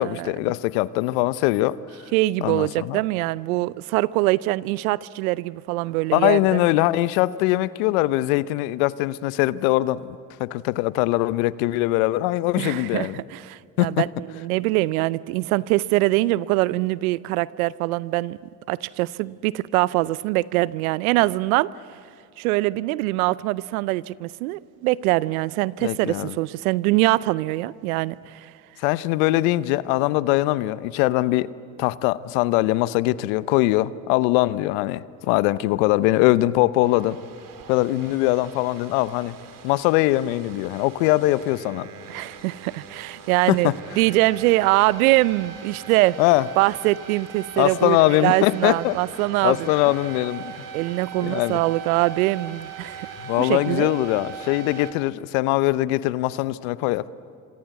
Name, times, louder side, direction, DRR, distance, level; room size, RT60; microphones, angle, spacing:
voice 1, 0.0-1.8 2.4-3.0 6.1-13.2 13.8-14.1 25.8-26.4 28.8-31.5 31.8-37.2 37.7-39.3 39.6-41.9 43.5-43.7 46.2-46.5 47.6-49.0 49.4-50.5 51.2-51.6 53.2-57.1, left 17 dB, 75° left, 0.8 m, -22 dB
voice 2, 2.1-6.6 12.6-14.1 14.3-18.4 18.7-21.7 22.4-28.5 42.1-46.2 46.6-49.6 50.7-53.1 53.4-53.9, right 19 dB, 80° right, 0.6 m, -23 dB
sound 1, 36.8-54.9, right 7 dB, 50° right, 2.5 m, -40 dB
27.5 x 25.5 x 8.3 m
hypercardioid pair, 55°, 42 cm